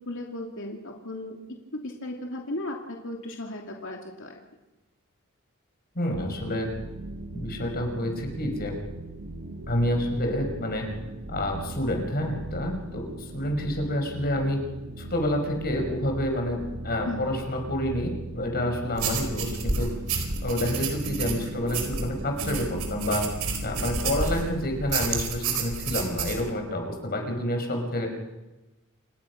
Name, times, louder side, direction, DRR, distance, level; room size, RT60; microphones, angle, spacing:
voice 1, 0.1-1.4 1.7-4.4 17.0-17.2, left 1 dB, 60° left, 1 dB, 2.7 m, -35 dB
voice 2, 5.9-6.7 7.3-8.8 9.7-10.9 11.3-14.6 15.0-19.9 20.4-23.2 23.6-28.1, left 1 dB, 45° left, 3 dB, 5.1 m, -28 dB
sound 1, 6.1-24.9, right 2 dB, 60° right, 1.8 m, -39 dB
sound 2, 19.0-24.5 24.9-26.4, right 4 dB, 85° right, 4.8 m, -30 dB
28.5 x 19.5 x 6.0 m, 1.0 s
head